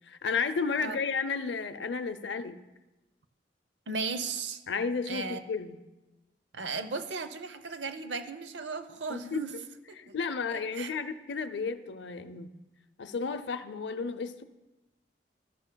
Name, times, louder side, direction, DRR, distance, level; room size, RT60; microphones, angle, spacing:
voice 1, 0.1-2.6 4.7-5.8 9.1-9.4 10.0-12.5 13.0-14.4, left 5 dB, 80° left, 11 dB, 0.6 m, -33 dB
voice 2, 3.9-4.6 5.1-5.4 6.5-9.6 10.1-10.2 10.5-10.9, right 4 dB, 80° right, 10 dB, 0.7 m, -36 dB
13.5 x 12.0 x 2.2 m, 1.0 s
head